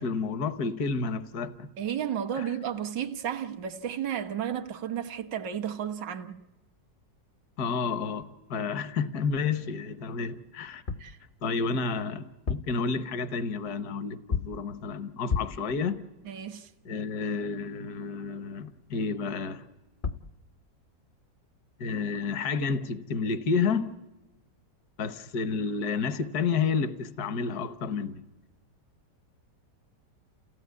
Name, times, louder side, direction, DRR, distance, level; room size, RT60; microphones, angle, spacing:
voice 1, 0.0-1.7 2.4-2.5 7.6-10.8 11.4-16.0 16.8-19.7 21.8-23.9 25.0-28.2, left 5 dB, 60° left, 1.6 m, -30 dB
voice 2, 1.8-6.4 11.0-11.2 16.3-16.7, right 9 dB, 80° right, 1.9 m, -33 dB
sound 1, 10.7-11.2 12.3-12.8 14.3-14.7 15.3-15.7 19.7-19.8 20.0-20.4, left 5 dB, 40° left, 0.8 m, -32 dB
29.0 x 16.5 x 9.5 m
omnidirectional pair, 1.9 m